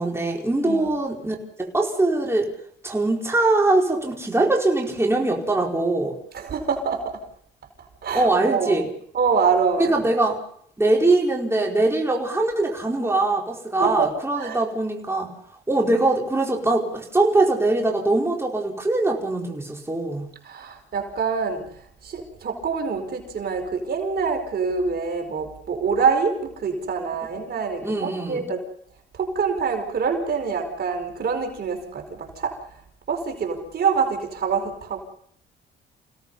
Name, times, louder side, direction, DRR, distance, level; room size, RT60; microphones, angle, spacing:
voice 1, 0.0-2.5 2.8-6.2 8.1-8.9 9.8-10.4 10.8-15.3 15.7-20.3 27.8-28.5, right 2 dB, 15° right, 0 dB, 4.7 m, -22 dB
voice 2, 6.3-7.2 8.0-8.7 9.1-9.9 13.8-14.6 20.4-21.7 22.0-28.6 29.1-32.6 33.1-35.0, right 5 dB, 55° right, 4 dB, 4.9 m, -25 dB
29.0 x 17.5 x 5.6 m, 0.65 s
cardioid pair, 90°, 20 cm